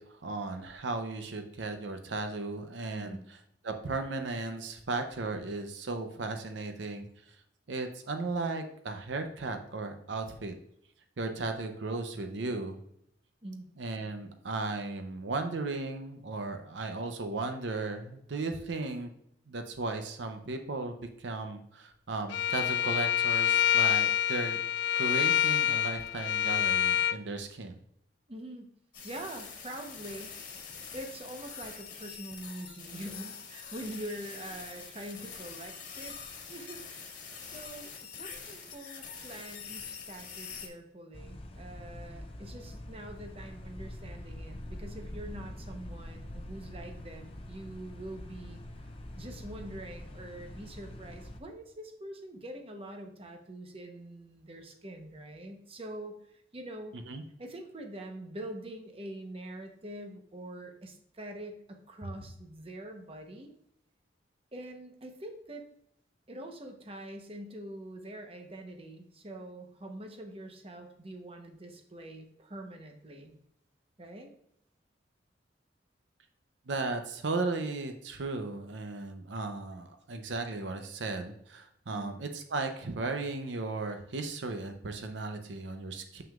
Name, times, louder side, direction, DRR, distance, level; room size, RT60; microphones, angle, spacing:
voice 1, 0.0-3.2 3.6-7.4 7.7-10.5 11.2-12.8 13.8-19.1 19.5-24.6 25.0-27.7 56.9-57.2 76.7-86.2, right 3 dB, 75° right, 6 dB, 0.6 m, -36 dB
Bowed string instrument, 22.3-27.2, left 10 dB, 70° left, 0.3 m, -27 dB
voice 2, 28.3-28.7 29.0-30.3 30.9-36.2 36.5-48.6 49.1-57.0 57.4-63.5 64.5-65.6 66.3-73.4 74.0-74.3 81.9-82.2, right 1 dB, 30° right, 4 dB, 0.9 m, -44 dB
sound 1, 28.9-40.7, left 6 dB, 45° left, 1.8 m, -45 dB
sound 2, 41.1-51.4, left 1 dB, 30° left, 0.6 m, -44 dB
7.1 x 6.1 x 2.4 m, 0.75 s
head